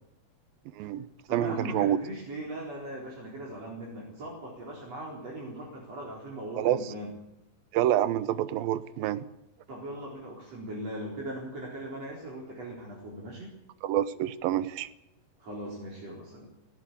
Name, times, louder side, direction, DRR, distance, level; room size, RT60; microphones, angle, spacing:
voice 1, 0.8-2.0 6.6-6.9 7.7-9.3 13.8-14.9, right 12 dB, 75° right, 15 dB, 2.5 m, -27 dB
voice 2, 1.3-7.1 9.7-13.5 15.4-16.5, right 1 dB, 45° right, -4 dB, 5.3 m, -39 dB
18.0 x 17.0 x 8.6 m, 0.89 s
omnidirectional pair, 4.3 m